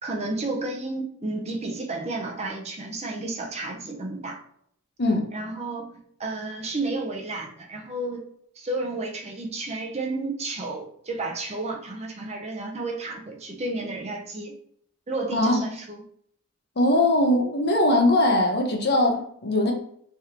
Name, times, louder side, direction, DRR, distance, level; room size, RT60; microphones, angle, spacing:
voice 1, 0.0-4.4 5.3-8.2 8.6-14.5 15.1-16.0, right 2 dB, 30° right, 1 dB, 0.6 m, -32 dB
voice 2, 5.0-5.3 15.3-15.6 16.8-19.7, left 1 dB, 50° left, 2 dB, 0.7 m, -21 dB
3.5 x 3.4 x 2.8 m, 0.66 s
head